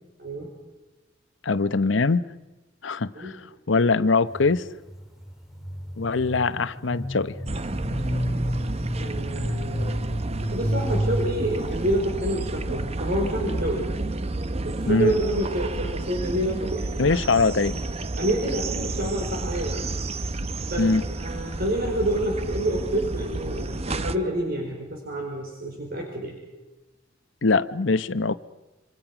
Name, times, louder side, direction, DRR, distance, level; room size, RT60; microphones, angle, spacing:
voice 1, 1.4-2.3 2.8-4.7 6.0-7.3 14.9-15.1 17.0-17.8 20.8-21.1 27.4-28.4, left 3 dB, 75° left, 0.9 m, -22 dB
sound 1, 4.3-12.0, equal, ahead, 2.3 m, -30 dB
sound 2, 7.5-24.2, right 2 dB, 35° right, 0.8 m, -31 dB
voice 2, 9.0-9.9 10.5-13.9 14.6-17.2 18.2-19.8 20.7-26.4, right 1 dB, 50° right, 4.8 m, -28 dB
27.5 x 25.5 x 6.0 m
head